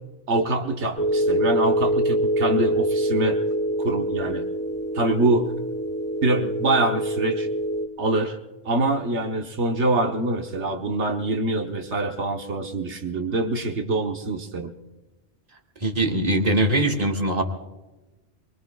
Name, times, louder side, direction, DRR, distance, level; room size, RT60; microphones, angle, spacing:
voice 1, 0.3-3.4 3.8-4.4 4.9-5.5 6.2-7.5 8.0-8.4 8.6-14.7, right 2 dB, 85° right, 3 dB, 1.5 m, -24 dB
sound 1, 1.0-7.9, right 1 dB, 10° left, 3.5 m, -25 dB
voice 2, 15.8-17.4, right 1 dB, 35° right, 2 dB, 2.0 m, -21 dB
24.0 x 23.0 x 2.4 m, 1.1 s
omnidirectional pair, 1.1 m